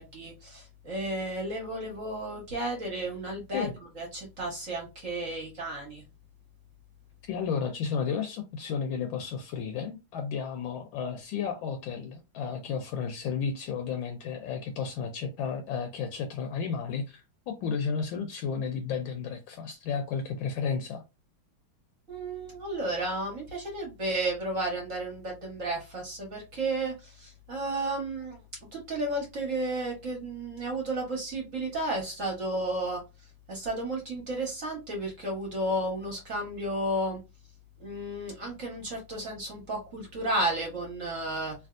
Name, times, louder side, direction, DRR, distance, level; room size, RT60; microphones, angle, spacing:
voice 1, 0.0-3.7 4.0-6.0 22.1-28.4 28.7-33.0 33.5-37.2 37.8-41.5, right 1 dB, 45° right, 1.3 m, -33 dB
voice 2, 7.3-21.0, left 6 dB, 75° left, 1.3 m, -33 dB
3.4 x 2.7 x 2.4 m
omnidirectional pair, 2.2 m